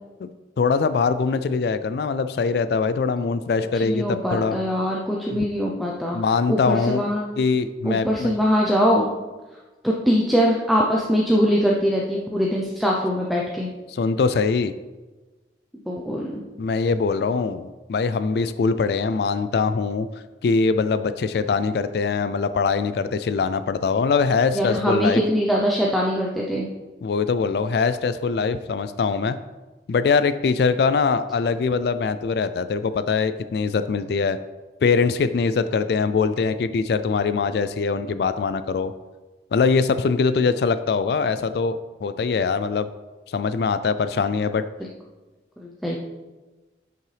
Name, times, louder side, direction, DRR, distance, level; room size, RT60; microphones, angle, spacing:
voice 1, 0.6-4.6 5.3-5.4 6.1-7.0 7.4-8.3 13.9-14.7 16.6-20.1 20.4-25.2 27.0-29.4 29.9-34.4 34.8-38.9 39.5-42.9 43.3-44.6, left 5 dB, 60° left, 12 dB, 0.3 m, -22 dB
voice 2, 3.7-6.2 6.5-7.2 7.8-9.1 9.8-13.7 15.9-16.4 24.5-26.7 45.6-46.0, equal, ahead, -3 dB, 0.6 m, -22 dB
9.1 x 5.5 x 3.3 m, 1.2 s
head